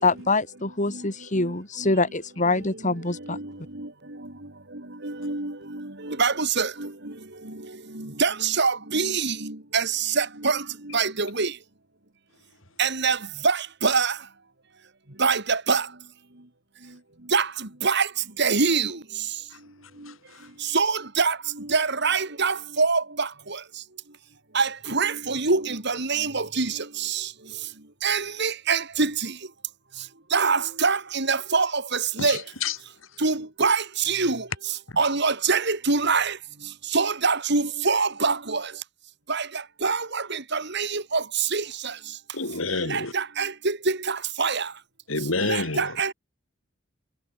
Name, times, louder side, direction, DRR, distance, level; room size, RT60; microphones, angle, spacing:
voice 1, 0.0-3.4, left 3 dB, 40° left, 4.9 m, -24 dB
voice 2, 5.0-6.9 8.0-10.6 10.9-11.5 12.8-13.2 13.4-14.2 15.2-15.9 17.3-17.5 17.8-18.1 18.4-19.0 20.7-23.3 24.5-27.3 28.0-29.3 30.3-32.4 33.2-34.4 35.0-36.4 36.9-38.7 39.3-39.5 39.8-41.9 42.9-44.7 45.4-46.1, right 4 dB, 60° right, 3.7 m, -24 dB
voice 3, 20.1-20.5 32.2-32.8 34.9-35.0 42.3-43.1 45.1-46.0, left 3 dB, 85° left, 4.5 m, -29 dB
head